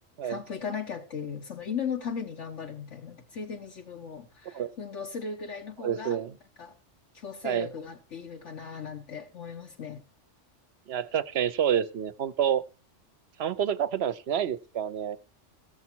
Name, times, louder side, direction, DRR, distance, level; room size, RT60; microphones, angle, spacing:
voice 1, 0.2-6.2 6.6-6.7 7.1-10.0, left 6 dB, 80° left, 1.4 m, -37 dB
voice 2, 5.8-6.3 7.4-7.7 10.9-12.6 13.4-15.2, right 9 dB, 65° right, 0.9 m, -28 dB
15.0 x 7.1 x 4.5 m
omnidirectional pair, 1.2 m